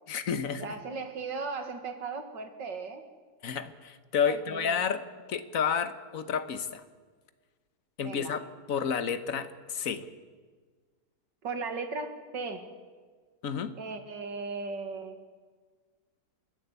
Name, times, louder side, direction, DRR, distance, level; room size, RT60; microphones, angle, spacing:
voice 1, 0.1-0.7 3.4-5.0 5.3-6.8 8.0-8.4 8.7-10.1 13.4-13.8, left 7 dB, 55° left, 11 dB, 1.4 m, -30 dB
voice 2, 0.6-3.0 4.2-4.7 8.0-8.3 11.4-12.6 13.8-15.2, right 4 dB, 85° right, 6 dB, 2.5 m, -37 dB
29.0 x 11.5 x 8.2 m, 1.5 s
omnidirectional pair, 1.9 m